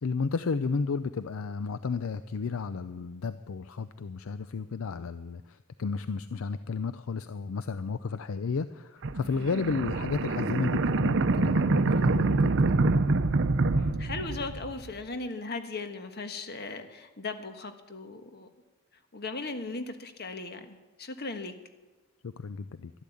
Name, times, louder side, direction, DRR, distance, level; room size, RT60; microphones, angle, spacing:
voice 1, 0.0-12.8 22.2-22.9, left 4 dB, 70° left, 13 dB, 0.5 m, -33 dB
sound 1, 9.0-14.9, right 3 dB, 60° right, 0.7 m, -26 dB
voice 2, 13.7-18.5 19.1-21.5, left 3 dB, 50° left, 7 dB, 1.4 m, -38 dB
12.0 x 12.0 x 8.4 m, 1.3 s
head